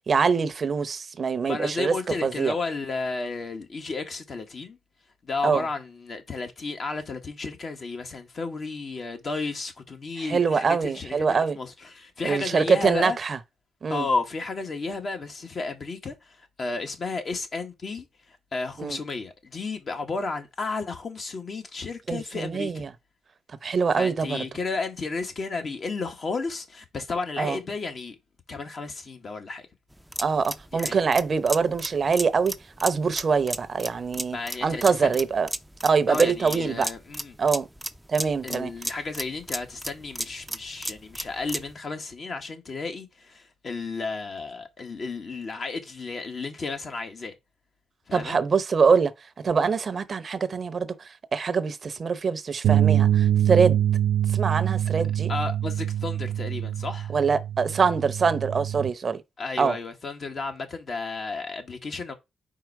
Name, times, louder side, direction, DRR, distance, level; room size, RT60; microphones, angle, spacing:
voice 1, 0.1-1.9 2.2-2.5 5.4-5.6 10.2-11.6 12.2-13.4 13.8-14.1 18.8-19.0 22.1-22.9 23.6-24.5 27.4-27.6 30.2-32.5 32.8-35.5 35.8-36.9 37.4-37.7 38.1-39.0 48.1-49.1 49.4-53.8 54.3-55.3 57.1-59.2 59.6-59.8, right 5 dB, 45° right, 0.7 m, -24 dB
voice 2, 1.4-4.8 5.2-13.2 13.9-22.8 23.9-28.2 28.5-29.7 30.7-31.0 34.3-35.2 36.1-37.4 38.4-47.3 48.1-48.4 55.3-57.1 59.4-62.1, left 3 dB, 50° left, 1.5 m, -33 dB
sound 1, 29.9-41.7, right 1 dB, 5° right, 0.5 m, -35 dB
sound 2, 52.6-58.9, right 11 dB, 80° right, 0.3 m, -24 dB
4.6 x 4.4 x 4.7 m
supercardioid pair, 65°, 0 cm